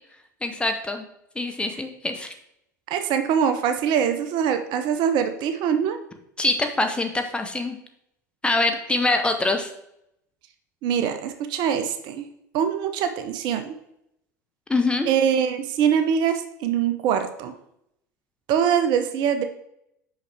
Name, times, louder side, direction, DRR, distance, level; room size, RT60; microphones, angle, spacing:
voice 1, 0.4-1.0 1.4-2.3 6.4-7.8 8.4-9.7 14.7-15.1, left 2 dB, 10° left, 5 dB, 0.9 m, -24 dB
voice 2, 2.9-6.0 10.8-12.3 12.5-13.7 15.1-17.5 18.5-19.4, right 8 dB, 50° right, 8 dB, 0.7 m, -23 dB
5.7 x 5.6 x 3.5 m, 0.77 s
hypercardioid pair, 80°, 10 cm